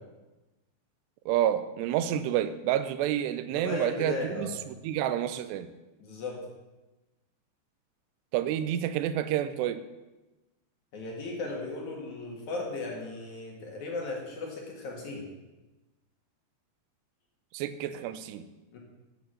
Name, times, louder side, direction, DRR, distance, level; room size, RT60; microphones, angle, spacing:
voice 1, 1.3-4.5 4.8-5.7 8.3-9.8 17.5-18.5, right 11 dB, 80° right, 12 dB, 2.7 m, -29 dB
voice 2, 3.5-4.5 6.0-6.4 10.9-15.2 18.7-18.8, left 3 dB, 55° left, -1 dB, 2.7 m, -36 dB
9.3 x 7.0 x 7.6 m, 1.1 s
omnidirectional pair, 5.0 m